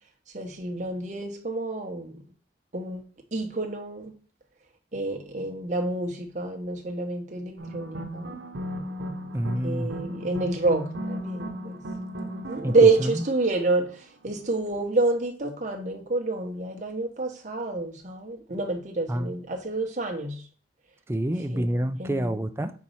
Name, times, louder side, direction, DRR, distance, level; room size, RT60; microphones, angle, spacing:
voice 1, 0.3-2.2 2.7-3.0 3.3-4.1 4.9-8.4 9.6-11.8 12.3-20.4 21.5-21.7 22.0-22.3, right 3 dB, 40° right, 1.0 m, -28 dB
sound 1, 7.6-14.2, equal, 85° right, 0.9 m, -36 dB
voice 2, 9.3-9.9 12.6-13.2 19.1-19.4 21.1-22.7, right 1 dB, 15° right, 0.4 m, -28 dB
4.6 x 4.1 x 5.5 m
head